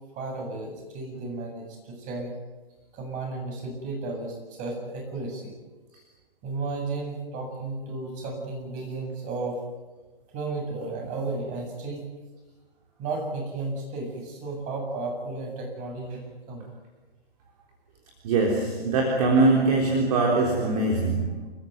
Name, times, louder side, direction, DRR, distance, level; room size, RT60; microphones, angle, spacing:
voice 1, 0.1-2.3 2.9-5.6 6.4-9.6 10.3-12.0 13.0-16.7, right 3 dB, 25° right, 1 dB, 7.9 m, -33 dB
voice 2, 18.2-21.5, right 3 dB, 40° right, 1 dB, 3.7 m, -22 dB
28.0 x 15.0 x 9.4 m, 1.2 s
figure-of-eight pair, 125°, 30 cm